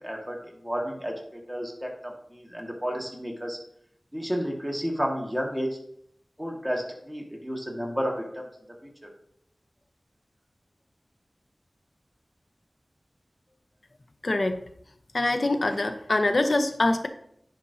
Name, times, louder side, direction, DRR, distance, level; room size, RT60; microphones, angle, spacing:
voice 1, 0.0-3.6 4.1-5.7 6.4-8.4, equal, 10° right, -1 dB, 1.8 m, -31 dB
voice 2, 14.2-14.6 15.1-17.1, left 2 dB, 65° left, 7 dB, 0.7 m, -24 dB
10.5 x 5.3 x 2.8 m, 0.69 s
wide cardioid pair, 45°, 0 cm